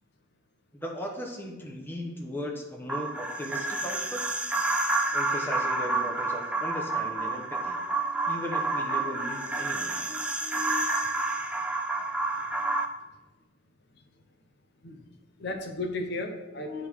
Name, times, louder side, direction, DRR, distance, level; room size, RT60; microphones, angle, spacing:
voice 1, 0.7-4.2 5.1-7.8 8.3-9.9, equal, 10° left, 0 dB, 0.9 m, -37 dB
sound 1, 2.9-12.9, right 3 dB, 5° right, 0.5 m, -29 dB
voice 2, 8.9-11.6 12.4-12.6 13.9-14.2 14.8-15.1 15.4-16.9, left 2 dB, 60° left, 4 dB, 0.8 m, -38 dB
10.5 x 3.6 x 4.6 m, 1.1 s
head